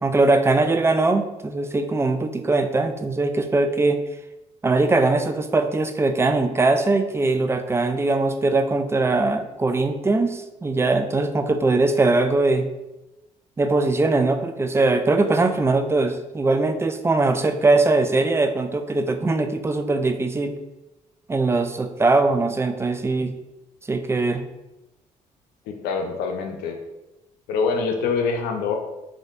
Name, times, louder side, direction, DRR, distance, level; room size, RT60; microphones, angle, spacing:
voice 1, 0.0-4.0 4.6-12.7 13.6-20.5 21.3-23.3 23.9-24.4, right 3 dB, 15° right, 7 dB, 0.3 m, -21 dB
voice 2, 25.7-26.7 27.5-28.7, left 5 dB, 80° left, 4 dB, 0.5 m, -25 dB
3.2 x 2.6 x 2.4 m, 0.98 s
supercardioid pair, 60°, 16 cm